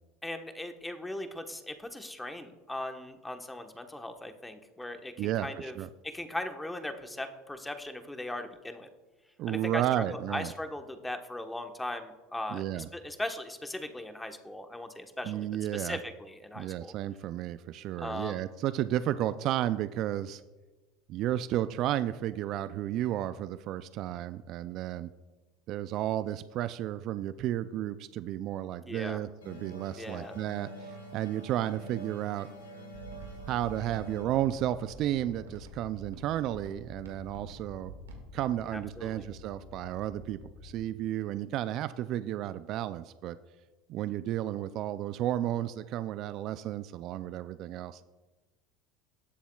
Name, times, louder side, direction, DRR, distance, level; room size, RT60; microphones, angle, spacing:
voice 1, 0.2-5.8 6.0-8.9 9.5-15.5 15.7-16.9 18.0-18.4 28.9-29.2 30.0-30.3 38.7-39.3, left 1 dB, 10° left, 6 dB, 1.2 m, -39 dB
voice 2, 5.2-5.9 9.4-10.5 12.5-12.9 15.2-16.0 16.6-20.4 21.1-25.1 25.7-32.5 33.5-37.9 38.3-43.4 43.9-48.0, right 12 dB, 55° right, 13 dB, 0.4 m, -32 dB
sound 1, 29.4-36.7, right 1 dB, 90° left, 3.2 m, -48 dB
sound 2, 32.9-38.2, right 3 dB, 90° right, 1.9 m, -50 dB
sound 3, 33.5-40.8, left 4 dB, 45° left, 3.1 m, -50 dB
19.5 x 7.0 x 2.3 m, 1.2 s
hypercardioid pair, 85°, 0 cm